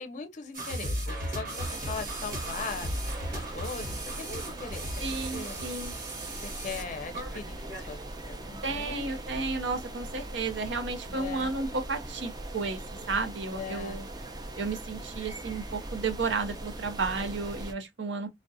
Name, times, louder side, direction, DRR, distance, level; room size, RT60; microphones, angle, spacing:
voice 1, 0.0-2.9 3.3-5.6 6.3-9.1 11.1-11.5 13.5-14.0, left 4 dB, 45° left, 0.5 m, -40 dB
sound 1, 0.5-7.9, right 1 dB, 50° right, 1.0 m, -36 dB
sound 2, 1.6-17.7, right 1 dB, 25° right, 0.5 m, -40 dB
voice 2, 5.0-5.9 8.6-12.8 13.1-14.1 14.6-18.3, right 4 dB, 80° right, 0.6 m, -32 dB
2.4 x 2.1 x 2.5 m
head